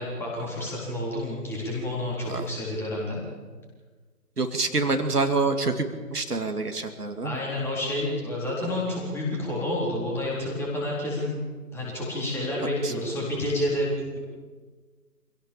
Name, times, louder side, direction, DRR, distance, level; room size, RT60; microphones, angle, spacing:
voice 1, 0.0-3.2 7.2-11.4 11.7-14.2, left 1 dB, 5° left, -4 dB, 4.0 m, -29 dB
voice 2, 4.4-5.8 6.1-7.4 12.8-12.9, right 3 dB, 65° right, 6 dB, 2.6 m, -26 dB
26.5 x 17.0 x 7.2 m, 1.4 s
figure-of-eight pair, 145°, 49 cm